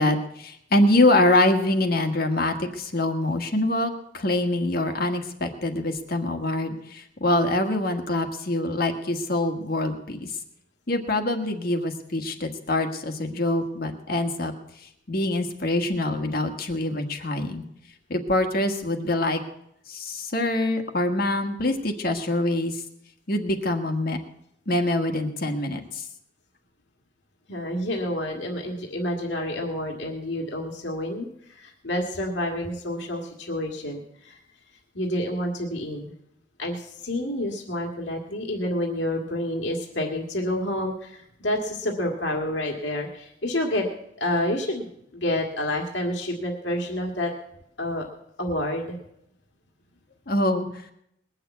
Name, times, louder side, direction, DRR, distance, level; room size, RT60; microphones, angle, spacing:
voice 1, 0.0-10.3 10.9-14.5 15.1-17.6 18.1-19.4 19.9-22.8 23.3-24.2 24.7-26.0 50.3-50.8, left 1 dB, 55° left, 5 dB, 1.6 m, -24 dB
voice 2, 27.5-34.4 34.9-36.1 36.6-43.9 44.2-47.3 47.8-48.1 48.4-49.0, left 1 dB, 75° left, 0 dB, 1.9 m, -29 dB
20.5 x 6.8 x 8.3 m, 0.77 s
head